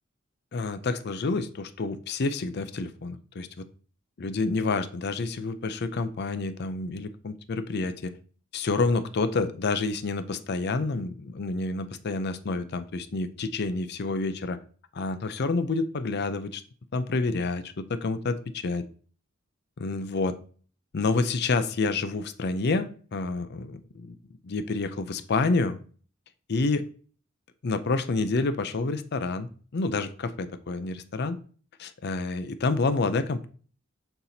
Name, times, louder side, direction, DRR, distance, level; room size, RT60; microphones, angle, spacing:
voice 1, 0.5-3.6 4.2-8.1 8.5-14.6 14.9-16.6 16.9-18.8 19.8-20.4 20.9-24.2 24.4-25.8 26.5-26.8 27.6-31.4 31.8-33.5, left 3 dB, 55° left, 12 dB, 0.5 m, -28 dB
6.7 x 5.9 x 2.7 m, 0.42 s
head